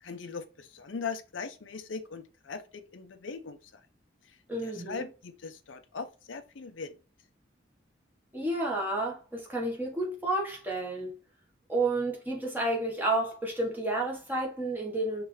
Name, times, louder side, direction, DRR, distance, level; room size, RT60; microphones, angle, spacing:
voice 1, 0.0-3.8 4.6-7.0, left 5 dB, 85° left, 0.6 m, -40 dB
voice 2, 4.5-5.1 8.3-11.1 11.7-15.2, right 2 dB, 10° right, 1.3 m, -31 dB
5.0 x 3.3 x 3.2 m
head